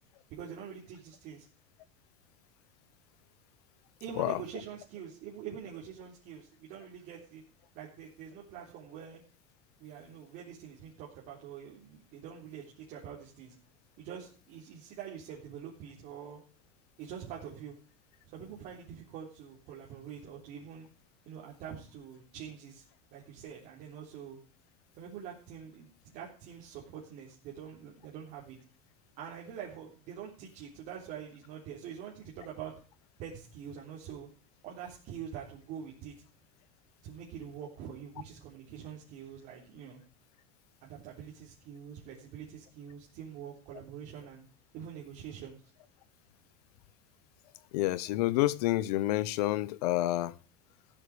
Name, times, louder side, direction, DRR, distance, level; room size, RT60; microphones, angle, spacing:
voice 1, 0.3-1.5 4.0-7.4 7.7-9.2 9.8-13.5 14.0-16.4 17.0-17.8 18.3-20.9 21.3-22.8 23.1-24.4 24.9-28.6 29.2-32.7 33.2-34.3 34.6-36.2 37.0-40.0 40.8-44.4 44.7-45.6, right 8 dB, 45° right, -3 dB, 3.7 m, -45 dB
voice 2, 47.7-50.3, left 16 dB, 75° left, 20 dB, 1.0 m, -28 dB
15.5 x 8.8 x 5.0 m, 0.40 s
supercardioid pair, 165°, 20 cm